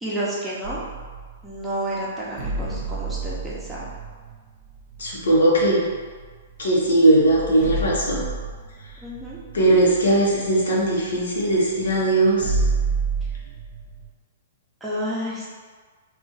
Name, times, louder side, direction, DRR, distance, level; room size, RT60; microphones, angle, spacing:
voice 1, 0.0-0.8 1.4-3.9 9.0-9.4 14.8-15.5, right 1 dB, 5° right, -8 dB, 0.7 m, -30 dB
sound 1, 0.6-1.6 2.4-6.3 6.8-6.9 7.2-14.1, right 3 dB, 40° right, 0.7 m, -30 dB
voice 2, 5.0-5.9 6.6-8.3 9.5-12.6, right 1 dB, 85° left, -4 dB, 0.9 m, -19 dB
2.5 x 2.4 x 4.0 m, 1.5 s
hypercardioid pair, 140°, 0 cm